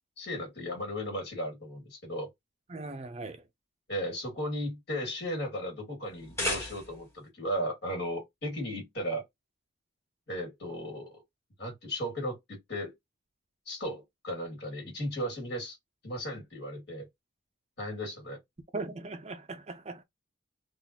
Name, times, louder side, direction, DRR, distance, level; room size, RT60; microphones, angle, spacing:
voice 1, 0.2-2.3 3.9-9.2 10.3-11.2 11.6-12.9 13.7-15.8 16.0-17.1 17.8-18.4, equal, 55° left, 2.3 m, -35 dB
voice 2, 2.7-3.4 18.7-20.0, right 3 dB, 30° right, 0.5 m, -39 dB
sound 1, 6.1-7.2, left 1 dB, 15° left, 1.3 m, -34 dB
4.0 x 2.5 x 2.9 m
head